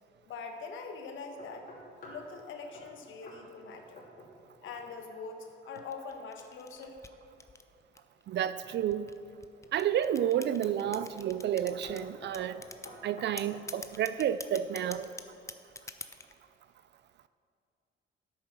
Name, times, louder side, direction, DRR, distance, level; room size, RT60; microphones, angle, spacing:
voice 1, 0.3-1.7 2.0-4.0 4.6-7.0, left 4 dB, 75° left, 4 dB, 1.3 m, -43 dB
sound 1, 1.4-2.3 2.7-2.9 3.3-3.4 3.7-4.4 4.7-5.0 8.4-9.0 9.6-10.0 10.8-11.1 11.4-11.6 11.8-13.7, left 1 dB, 45° left, 3.0 m, -51 dB
sound 2, 5.8-8.2 8.9-12.0 12.3-13.0 13.4-16.3, left 3 dB, 15° left, 0.6 m, -45 dB
voice 2, 8.3-9.1 9.7-12.6 13.0-15.1, right 10 dB, 60° right, 13 dB, 0.4 m, -30 dB
9.9 x 8.6 x 5.9 m, 2.6 s
cardioid pair, 90°, 20 cm